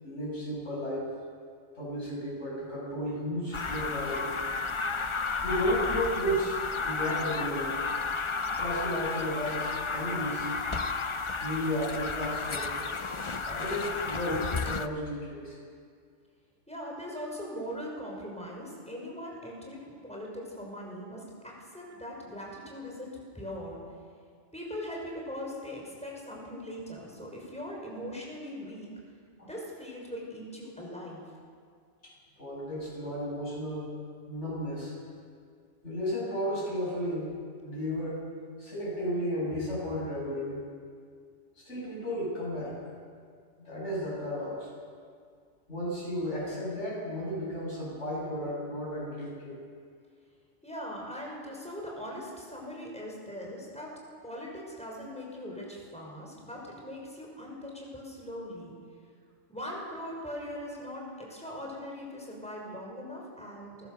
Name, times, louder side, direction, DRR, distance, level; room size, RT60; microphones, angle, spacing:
voice 1, 0.0-1.1 1.7-4.4 5.4-7.8 8.6-10.5 11.4-12.8 13.3-15.6 29.4-29.5 32.0-33.9 34.3-35.0 35.8-37.4 37.6-38.2 38.6-40.7 41.6-42.8 43.6-44.7 45.7-49.6, equal, 70° left, -5 dB, 8.3 m, -33 dB
sound 1, 3.5-14.9, left 4 dB, 30° left, 0.7 m, -32 dB
voice 2, 16.7-23.8 24.5-28.9 29.4-31.2 50.6-53.9 54.2-58.7 59.5-63.9, equal, 5° left, -2 dB, 5.5 m, -40 dB
29.0 x 15.0 x 6.8 m, 2.1 s
omnidirectional pair, 1.2 m